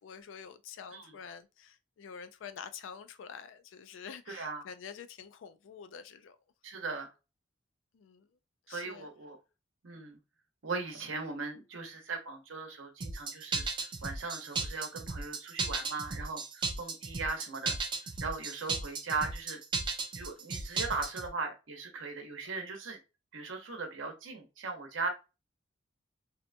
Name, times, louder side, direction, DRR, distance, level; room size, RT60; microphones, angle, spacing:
voice 1, 0.0-6.4 7.9-8.3 8.7-9.1, left 7 dB, 85° left, 0.3 m, -47 dB
voice 2, 4.3-4.6 6.6-7.1 8.7-9.4 9.8-10.2 10.6-17.8 18.2-19.6 20.1-23.0 23.3-25.1, right 4 dB, 90° right, 0.7 m, -38 dB
sound 1, 13.0-21.3, right 4 dB, 25° right, 0.3 m, -35 dB
2.7 x 2.1 x 2.5 m
head